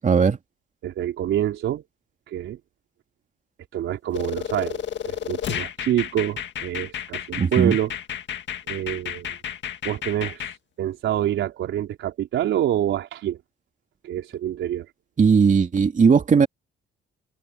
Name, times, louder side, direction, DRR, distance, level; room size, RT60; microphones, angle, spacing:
voice 1, 0.0-0.4 7.4-7.8 15.2-16.5, right 6 dB, 40° right, 2.8 m, -17 dB
voice 2, 0.8-1.8 2.3-2.6 3.7-7.9 8.7-9.3 9.8-10.4 10.8-13.4 14.0-14.9, right 11 dB, 80° right, 4.2 m, -26 dB
sound 1, 4.1-10.6, left 9 dB, 65° left, 1.9 m, -32 dB
cardioid pair, 90°, 20 cm